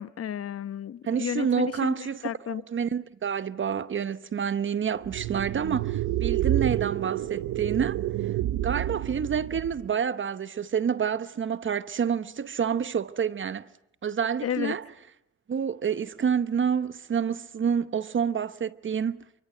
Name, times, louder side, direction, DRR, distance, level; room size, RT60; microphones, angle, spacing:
voice 1, 0.0-2.6 14.4-14.7, left 9 dB, 50° left, 1.1 m, -32 dB
voice 2, 1.0-8.0 8.6-13.7 14.0-14.8 15.5-19.2, right 7 dB, 40° right, 1.0 m, -28 dB
sound 1, 5.0-9.9, right 14 dB, 75° right, 1.0 m, -29 dB
28.5 x 24.0 x 7.9 m
cardioid pair, 90°, 30 cm